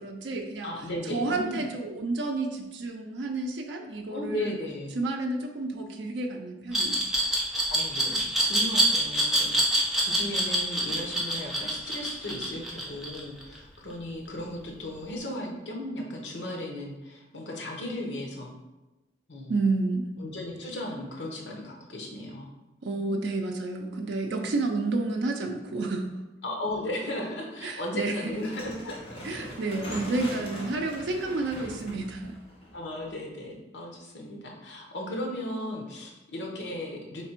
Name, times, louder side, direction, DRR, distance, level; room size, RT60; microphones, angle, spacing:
voice 1, 0.0-0.7 1.0-4.6 4.9-7.0 19.5-20.0 22.8-26.1 27.6-28.3 29.2-32.4, right 3 dB, 85° right, 2 dB, 0.4 m, -30 dB
voice 2, 0.6-1.6 4.1-5.0 7.7-18.5 19.3-19.6 20.2-22.5 22.9-23.2 26.4-29.2 29.9-30.4 32.7-37.2, left 1 dB, 85° left, 0 dB, 0.9 m, -36 dB
Glass, 6.7-13.6, right 1 dB, ahead, 0.6 m, -25 dB
sound 1, 28.2-33.4, equal, 30° left, 0.9 m, -41 dB
3.3 x 3.3 x 4.4 m, 1.1 s
head